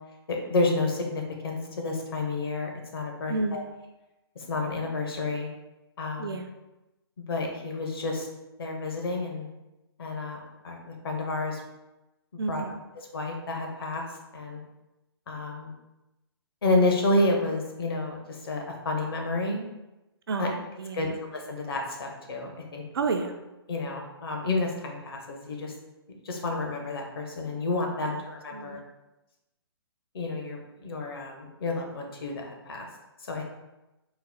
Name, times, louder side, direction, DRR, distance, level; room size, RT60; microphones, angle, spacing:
voice 1, 0.3-3.6 4.3-5.5 6.0-6.4 7.2-8.3 8.6-9.5 10.0-10.4 10.6-11.6 12.3-12.6 12.9-14.0 14.3-14.6 15.3-15.7 16.6-19.6 20.4-20.5 20.9-22.8 23.7-25.7 26.2-28.8 30.1-32.9 33.2-33.5, left 2 dB, 60° left, 2 dB, 0.9 m, -30 dB
voice 2, 3.3-3.8 6.2-6.5 12.4-12.8 20.3-21.1 22.9-23.4 28.5-28.8, right 3 dB, 60° right, 5 dB, 0.5 m, -31 dB
3.9 x 2.1 x 3.9 m, 0.99 s
figure-of-eight pair, 130°, 14 cm